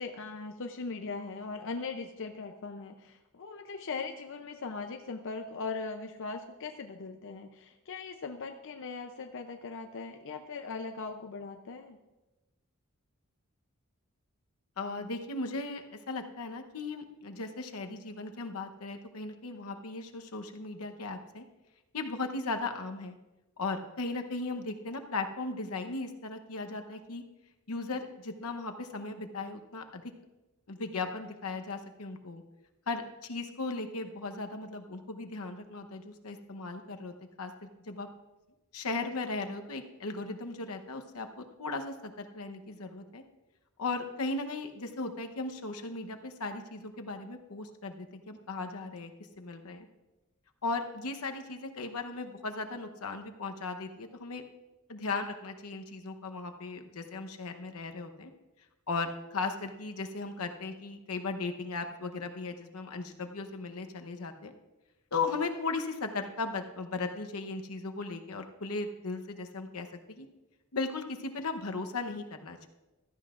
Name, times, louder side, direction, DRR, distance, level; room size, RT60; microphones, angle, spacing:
voice 1, 0.0-12.0, left 4 dB, 60° left, 5 dB, 0.6 m, -39 dB
voice 2, 14.8-21.4 21.9-23.2 23.6-27.2 27.7-30.0 30.7-32.4 32.9-38.1 38.7-43.2 43.8-49.1 49.4-49.9 50.6-54.4 54.9-58.3 58.9-64.5 65.1-70.3 70.7-72.7, left 3 dB, 85° left, 6 dB, 0.9 m, -37 dB
15.5 x 13.0 x 2.5 m, 1.1 s
head